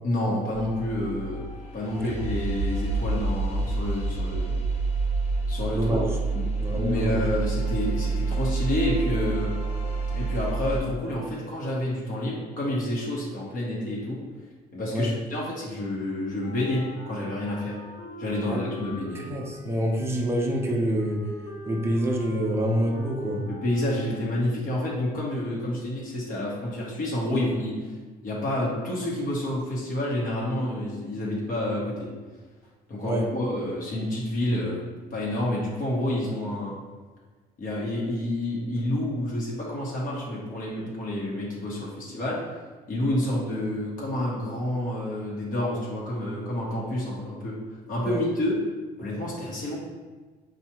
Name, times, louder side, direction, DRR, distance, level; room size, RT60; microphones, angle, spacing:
voice 1, 0.0-1.4 1.7-4.5 5.5-6.0 6.3-9.5 10.1-14.2 14.7-17.8 18.2-19.2 23.5-28.0 28.2-32.1 32.9-36.7 37.6-42.4 42.9-47.6 47.9-48.5 49.0-49.8, left 1 dB, 55° left, -5 dB, 1.0 m, -29 dB
sound 1, 0.5-10.8, right 3 dB, 40° left, 0.7 m, -28 dB
voice 2, 5.7-6.1 6.6-7.3 14.9-15.1 18.5-18.6 19.1-21.3 21.7-23.5 33.0-33.3 48.0-48.2, equal, 15° right, -1 dB, 0.6 m, -27 dB
Wind instrument woodwind instrument, 16.4-24.7, left 2 dB, 90° left, 0.8 m, -43 dB
4.5 x 2.4 x 2.9 m, 1.3 s
cardioid pair, 110°, 17 cm